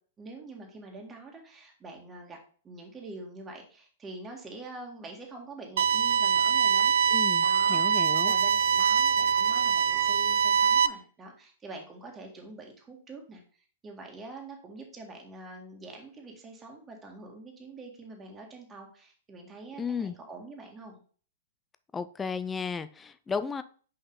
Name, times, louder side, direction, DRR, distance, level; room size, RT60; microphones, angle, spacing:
voice 1, 0.2-2.4 2.6-21.0, right 2 dB, 20° right, 1.9 m, -45 dB
sound 1, 5.8-10.9, right 7 dB, 60° right, 0.4 m, -23 dB
voice 2, 7.1-8.3 19.8-20.2 21.9-23.6, left 5 dB, 15° left, 0.5 m, -34 dB
5.7 x 5.3 x 3.8 m
figure-of-eight pair, 110°, 0 cm